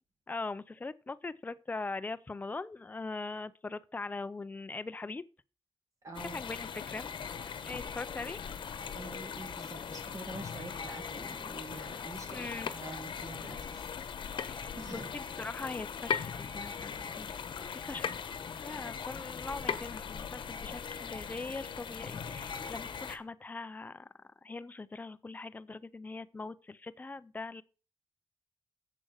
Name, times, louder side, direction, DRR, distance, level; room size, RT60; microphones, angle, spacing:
voice 1, 0.3-5.2 6.3-7.1 7.6-8.4 12.3-12.7 14.4-17.3 17.8-18.2 18.6-24.1 24.4-27.6, left 3 dB, 20° left, 0.5 m, -41 dB
voice 2, 6.0-6.4 9.0-14.2 14.8-15.1, right 2 dB, 40° right, 2.1 m, -46 dB
sound 1, 6.1-23.2, left 6 dB, 70° left, 1.0 m, -41 dB
sound 2, 12.6-12.9 14.4-14.6 16.1-16.5 18.0-18.3 19.7-20.0, left 8 dB, 85° left, 0.9 m, -33 dB
8.1 x 7.7 x 6.4 m
wide cardioid pair, 170°, 9 cm